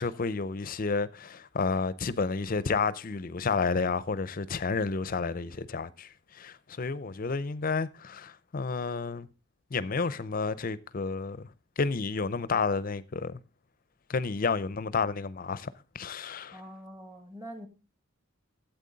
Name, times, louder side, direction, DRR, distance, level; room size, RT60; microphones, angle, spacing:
voice 1, 0.0-9.3 9.7-11.4 11.8-13.4 14.1-15.7 15.9-16.6, left 4 dB, 45° left, 0.6 m, -31 dB
voice 2, 16.5-17.7, equal, 15° right, 1.7 m, -44 dB
12.0 x 8.1 x 4.0 m
head